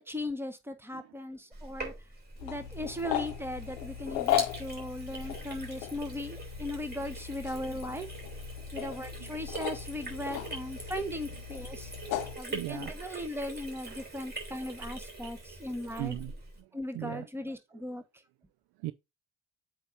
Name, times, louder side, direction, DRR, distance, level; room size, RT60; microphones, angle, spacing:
voice 1, 0.1-1.9 2.4-8.1 8.7-11.9 12.4-16.1 16.7-18.0, left 1 dB, 5° right, 1.3 m, -38 dB
Sink (filling or washing), 1.5-16.6, right 3 dB, 20° right, 3.1 m, -43 dB
sound 1, 2.4-12.4, left 12 dB, 70° left, 0.8 m, -37 dB
voice 2, 8.7-9.3 10.4-10.5 12.0-13.2 13.9-14.1 16.0-17.3 17.7-18.0 18.8-18.9, right 17 dB, 60° right, 0.5 m, -41 dB
8.0 x 2.9 x 5.0 m
figure-of-eight pair, 40°, 45 cm